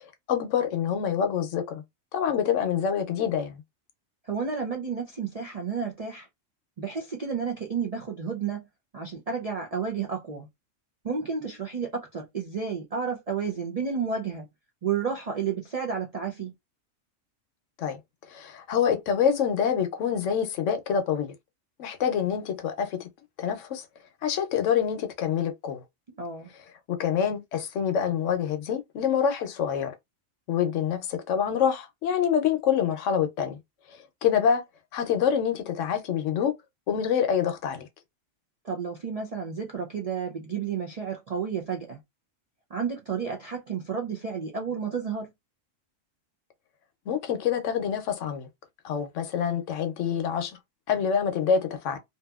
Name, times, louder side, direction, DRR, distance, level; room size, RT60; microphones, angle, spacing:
voice 1, 0.3-1.8 2.1-3.6 17.8-18.0 18.3-21.3 21.8-23.1 23.4-23.8 24.2-25.8 26.9-29.9 30.5-33.6 34.2-34.6 34.9-36.5 36.9-37.8 47.1-48.5 48.8-50.5 50.9-52.0, left 8 dB, 75° left, 0.9 m, -26 dB
voice 2, 4.2-6.3 6.8-8.6 8.9-10.5 11.0-14.5 14.8-16.5 26.2-26.5 38.6-42.0 42.7-45.3, right 6 dB, 60° right, 0.4 m, -31 dB
2.7 x 2.5 x 2.3 m
omnidirectional pair, 1.4 m